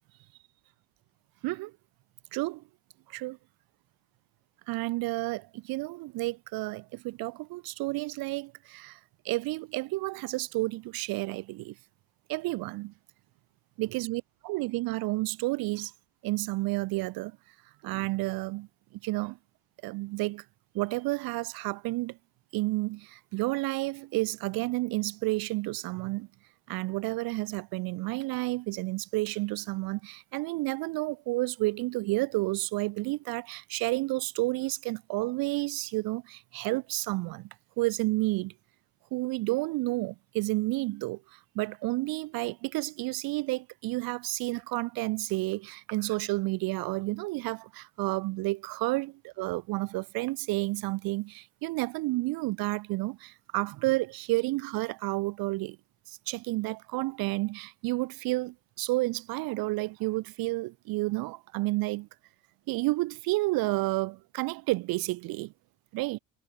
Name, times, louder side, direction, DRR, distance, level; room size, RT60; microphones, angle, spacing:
voice 1, 1.4-1.7 2.3-2.6 3.1-3.4 4.7-9.0 9.2-11.7 12.3-12.9 13.8-15.9 16.2-17.4 17.8-19.4 19.8-20.4 20.7-22.2 22.5-26.3 26.7-37.5 37.8-38.5 39.1-55.8 56.1-62.1 62.7-65.5 65.9-66.2, right 21 dB, 85° right, 4.8 m, -31 dB
cardioid pair, 145°, 35 cm